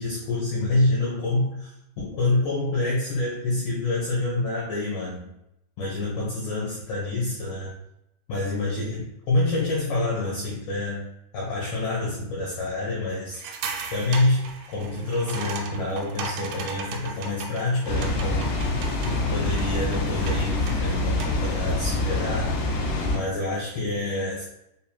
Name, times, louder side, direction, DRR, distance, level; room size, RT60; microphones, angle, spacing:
voice 1, 0.0-5.3 5.8-7.7 8.3-11.0 11.3-13.4 13.9-18.5 19.0-22.6 23.1-24.4, left 2 dB, 90° left, -6 dB, 1.8 m, -27 dB
sound 1, 13.3-21.5, right 4 dB, 80° right, 2.8 m, -37 dB
Water, 17.9-23.2, left 2 dB, 70° left, 2.9 m, -26 dB
7.3 x 2.8 x 2.3 m, 0.81 s
omnidirectional pair, 5.2 m